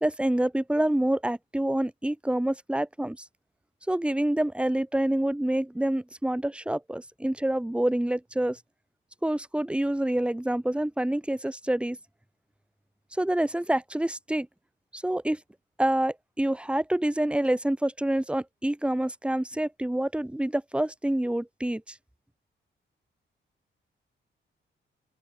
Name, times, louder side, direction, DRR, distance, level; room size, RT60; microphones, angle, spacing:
voice 1, 0.0-3.2 3.9-8.6 9.2-12.0 13.1-14.5 14.9-15.4 15.8-22.0, right 1 dB, 5° right, 1.7 m, -27 dB
open air
cardioid pair, 100°, 21 cm